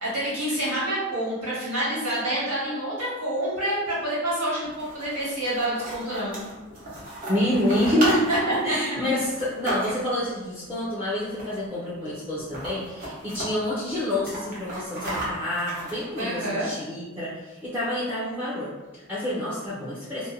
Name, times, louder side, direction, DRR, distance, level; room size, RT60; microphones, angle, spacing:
voice 1, 0.0-6.4 8.3-8.8 16.2-16.7, right 1 dB, 85° right, -8 dB, 1.5 m, -27 dB
sound 1, 4.6-10.3 11.3-11.8 12.0-12.1 12.4-13.5 13.9-16.5, right 1 dB, 40° right, 0.8 m, -34 dB
voice 2, 7.3-8.3 8.6-20.3, left 1 dB, 10° right, -9 dB, 0.5 m, -27 dB
2.6 x 2.1 x 2.6 m, 1.1 s
head